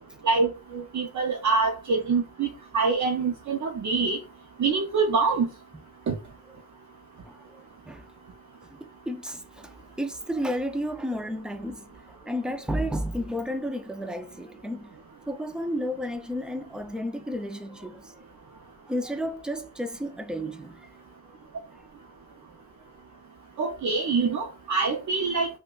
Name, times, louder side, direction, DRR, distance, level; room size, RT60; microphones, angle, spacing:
voice 1, 0.2-2.5 2.7-4.2 4.6-5.5 6.1-6.2 23.6-25.5, right 4 dB, 50° right, 0.5 m, -25 dB
voice 2, 7.3-8.0 8.7-14.9 15.3-18.0 18.9-20.9, equal, ahead, 0.3 m, -32 dB
5.1 x 2.2 x 2.3 m
wide cardioid pair, 130°, 37 cm